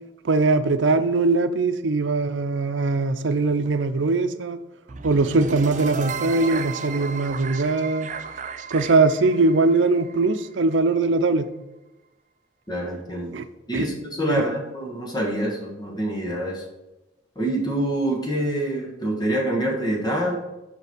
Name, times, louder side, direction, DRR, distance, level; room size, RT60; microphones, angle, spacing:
voice 1, 0.2-4.6 5.0-8.1 8.7-11.5 13.3-13.5 13.7-13.9 14.3-14.5, right 3 dB, 90° right, 10 dB, 0.6 m, -21 dB
sound 1, 4.9-11.0, right 5 dB, 40° right, 0.4 m, -34 dB
voice 2, 12.7-13.3 13.7-13.9 14.2-16.6 17.4-20.4, right 1 dB, 25° left, -1 dB, 1.3 m, -26 dB
6.0 x 5.6 x 6.0 m, 1.0 s
head